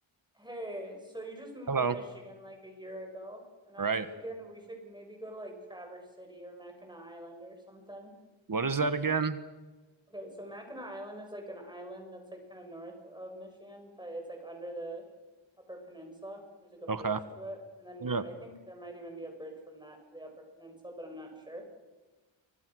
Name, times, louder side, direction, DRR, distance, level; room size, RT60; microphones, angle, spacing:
voice 1, 0.3-8.1 10.1-15.0 15.7-21.6, right 1 dB, 10° right, 2 dB, 6.7 m, -44 dB
voice 2, 8.5-9.4 16.9-17.2 18.0-18.2, right 5 dB, 45° right, 11 dB, 1.5 m, -29 dB
28.5 x 24.5 x 6.4 m, 1.2 s
wide cardioid pair, 120°, 47 cm